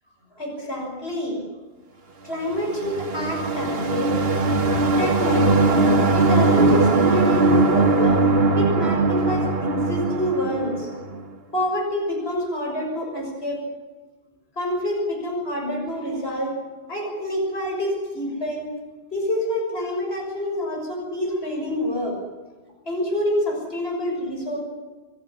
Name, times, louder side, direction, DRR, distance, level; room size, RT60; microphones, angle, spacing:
voice 1, 0.3-1.4 2.2-4.2 5.0-8.3 8.6-10.9 11.5-13.6 14.5-16.6 16.9-18.7 19.1-22.2 22.8-24.6, equal, 85° left, 0 dB, 6.7 m, -27 dB
sound 1, 2.5-11.2, right 3 dB, 70° right, 1.8 m, -20 dB
27.5 x 14.0 x 9.9 m, 1.2 s
omnidirectional pair, 1.0 m